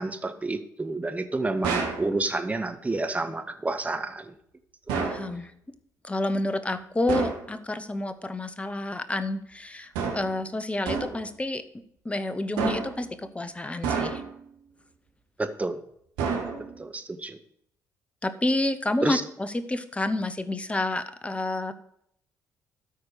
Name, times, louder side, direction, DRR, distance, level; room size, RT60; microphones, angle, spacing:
voice 1, 0.0-4.3 4.9-5.0 15.4-15.8 16.6-17.4 19.0-19.2, right 2 dB, 15° right, 9 dB, 0.8 m, -30 dB
sound 1, 1.6-2.1 4.9-5.3 7.1-7.5 9.9-10.4 10.9-11.3 12.6-13.0 13.8-14.4 16.2-16.8, right 5 dB, 70° right, 1.3 m, -29 dB
voice 2, 5.0-5.5 6.0-11.6 12.0-14.2 18.2-21.7, left 2 dB, 15° left, 12 dB, 0.7 m, -29 dB
13.0 x 4.4 x 4.8 m, 0.71 s
figure-of-eight pair, 45°, 9 cm